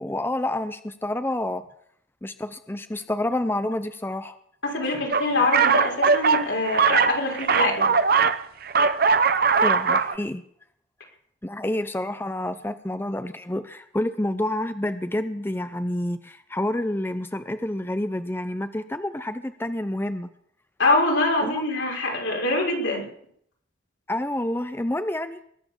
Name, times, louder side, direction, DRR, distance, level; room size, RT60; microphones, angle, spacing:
voice 1, 0.0-1.6 2.2-4.4 5.4-5.5 9.6-10.4 11.4-20.3 21.4-21.6 24.1-25.4, left 1 dB, 10° left, 10 dB, 0.6 m, -28 dB
voice 2, 4.6-7.9 20.8-23.0, left 2 dB, 80° left, 0 dB, 5.1 m, -24 dB
sound 1, 5.1-8.4 8.7-10.2, right 5 dB, 50° right, 0.8 m, -20 dB
21.5 x 9.4 x 7.1 m, 0.67 s
head